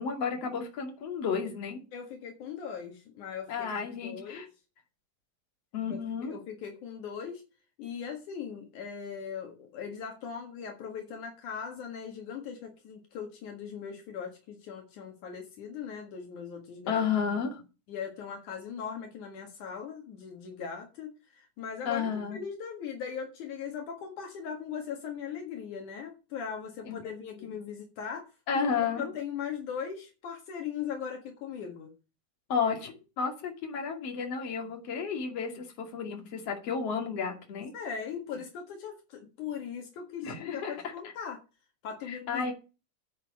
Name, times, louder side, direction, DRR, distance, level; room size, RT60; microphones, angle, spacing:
voice 1, 0.0-1.8 3.5-4.5 5.7-6.3 16.9-17.6 21.9-22.4 26.9-27.0 27.4-27.5 28.5-29.1 32.5-37.7 40.2-40.9 42.1-42.5, left 6 dB, 50° left, 2 dB, 3.5 m, -32 dB
voice 2, 1.9-4.4 6.3-7.4 7.8-17.1 17.9-28.3 28.7-31.9 37.7-41.4 41.8-42.5, left 7 dB, 75° left, 3 dB, 3.2 m, -39 dB
9.6 x 6.1 x 8.6 m, 0.31 s
omnidirectional pair, 3.5 m